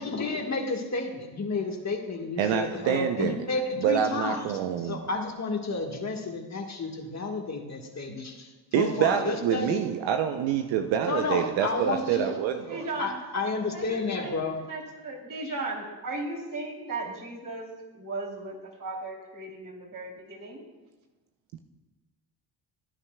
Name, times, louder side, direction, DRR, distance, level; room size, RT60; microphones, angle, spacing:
voice 1, 0.0-9.8 11.0-12.3 13.0-14.6, left 3 dB, 35° left, 2 dB, 1.6 m, -31 dB
voice 2, 2.4-3.4 3.8-5.0 8.7-12.9 21.5-21.6, right 9 dB, 70° right, 6 dB, 0.7 m, -26 dB
voice 3, 11.4-11.7 12.3-12.4 12.6-13.2 13.7-14.4 14.7-20.6, right 2 dB, 40° right, -1 dB, 3.1 m, -37 dB
16.0 x 9.7 x 2.3 m, 1.2 s
supercardioid pair, 60°, 47 cm